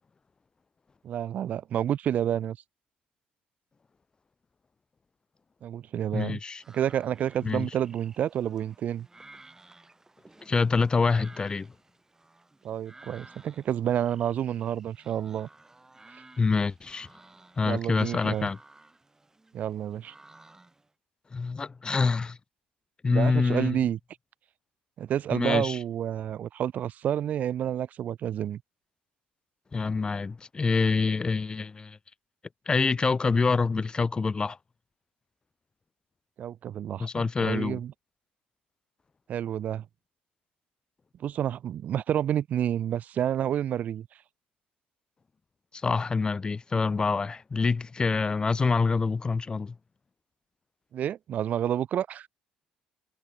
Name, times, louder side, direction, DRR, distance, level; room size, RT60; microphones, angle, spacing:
voice 1, 1.0-2.6 5.6-6.4 6.7-9.1 12.6-15.5 16.1-16.2 17.6-18.5 19.5-20.1 23.1-24.0 25.0-28.6 36.4-37.9 39.3-39.8 41.2-44.1 50.9-52.3, right 10 dB, 50° right, 0.5 m, -29 dB
voice 2, 6.1-6.6 7.4-7.7 10.4-11.7 16.4-17.1 17.6-18.6 21.3-22.4 23.0-23.8 25.3-25.8 29.7-32.0 32.7-34.6 37.0-37.8 45.7-49.7, left 4 dB, 25° left, 0.5 m, -26 dB
sound 1, 6.6-20.9, right 2 dB, 15° right, 5.6 m, -54 dB
figure-of-eight pair, 50°, 3 cm